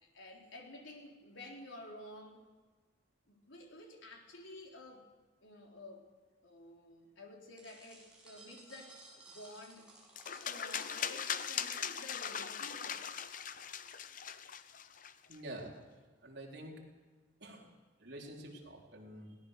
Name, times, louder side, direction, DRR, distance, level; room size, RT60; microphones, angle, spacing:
voice 1, 0.0-2.4 3.3-5.0 5.4-6.1 6.4-9.9 10.3-13.1, left 1 dB, 80° left, 1 dB, 4.0 m, -52 dB
sound 1, 7.6-13.6, right 2 dB, 5° right, 6.6 m, -58 dB
sound 2, 10.2-15.3, left 8 dB, 45° left, 0.8 m, -40 dB
voice 2, 15.3-15.8 16.2-16.8 17.4-17.7 18.0-19.4, right 1 dB, 60° right, -1 dB, 4.3 m, -47 dB
21.5 x 18.0 x 6.8 m, 1.4 s
head